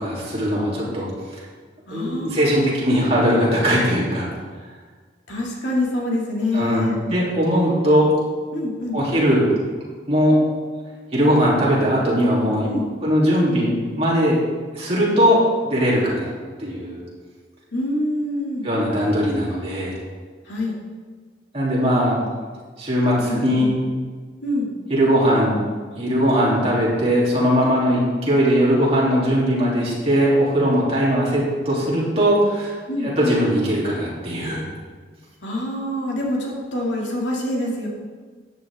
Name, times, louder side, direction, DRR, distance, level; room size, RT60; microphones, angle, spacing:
voice 1, 0.0-1.4 1.9-4.3 6.5-6.8 7.1-8.1 8.9-9.5 10.1-10.4 11.1-12.7 13.0-14.4 14.7-16.3 16.6-17.0 18.6-20.0 21.5-22.2 22.8-23.7 24.9-25.6 26.0-32.7 33.0-34.7, equal, 35° right, -6 dB, 3.1 m, -19 dB
voice 2, 1.9-2.7 5.3-7.0 8.5-9.0 12.7-12.9 17.7-18.7 20.4-20.8 23.2-23.8 24.4-24.8 32.9-33.1 35.4-37.9, left 1 dB, 75° left, -2 dB, 2.5 m, -26 dB
13.5 x 9.5 x 3.7 m, 1.5 s
head